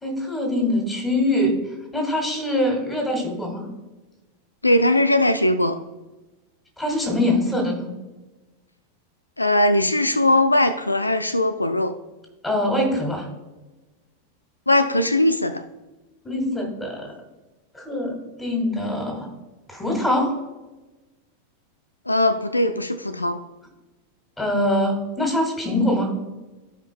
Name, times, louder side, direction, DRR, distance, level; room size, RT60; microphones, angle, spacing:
voice 1, 0.0-1.5 1.9-3.7 6.8-7.9 12.4-13.3 16.2-17.1 17.7-19.3 19.7-20.3 24.4-26.2, left 1 dB, 10° left, 2 dB, 2.3 m, -23 dB
voice 2, 4.6-5.8 9.4-11.9 14.7-15.6 22.1-23.4, left 1 dB, 85° left, 11 dB, 0.4 m, -20 dB
15.0 x 5.1 x 2.2 m, 1.1 s
figure-of-eight pair, 90°, 0 cm